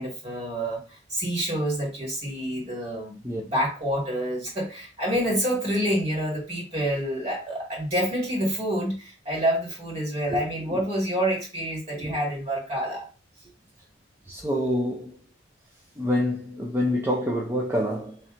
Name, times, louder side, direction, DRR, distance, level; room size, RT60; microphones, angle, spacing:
voice 1, 0.0-13.1, equal, 30° right, 1.9 m, -28 dB
voice 2, 14.3-15.2 16.0-18.2, equal, 10° right, 0.5 m, -27 dB
3.3 x 2.9 x 3.7 m
head